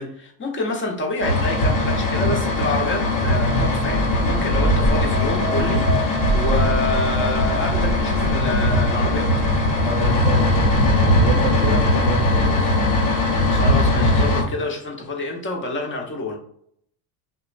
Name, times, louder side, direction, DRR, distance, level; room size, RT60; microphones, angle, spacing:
voice 1, 0.0-9.3 12.6-12.7 13.5-16.4, left 2 dB, 25° left, 1 dB, 0.8 m, -27 dB
sound 1, 1.2-14.4, left 2 dB, 85° left, 0.9 m, -20 dB
sound 2, 3.2-11.0, right 2 dB, 45° right, 0.7 m, -26 dB
voice 2, 9.8-12.7 14.4-14.7, right 2 dB, 20° right, -2 dB, 0.4 m, -29 dB
2.9 x 2.1 x 2.5 m, 0.65 s
supercardioid pair, 85°, 47 cm